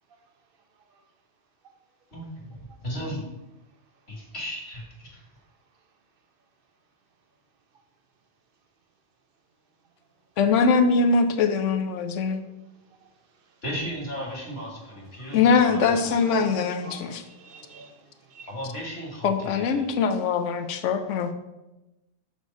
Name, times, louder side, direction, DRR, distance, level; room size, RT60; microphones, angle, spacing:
voice 1, 2.1-3.2 4.1-5.2 13.6-15.8 16.1-16.2 18.5-19.9, equal, 55° left, -2 dB, 2.1 m, -35 dB
voice 2, 10.4-12.4 15.3-17.2 19.2-21.3, left 5 dB, 80° left, 9 dB, 1.0 m, -22 dB
voice 3, 15.7-18.5, right 4 dB, 50° right, 4 dB, 0.9 m, -44 dB
6.7 x 3.2 x 5.2 m, 0.98 s
omnidirectional pair, 1.3 m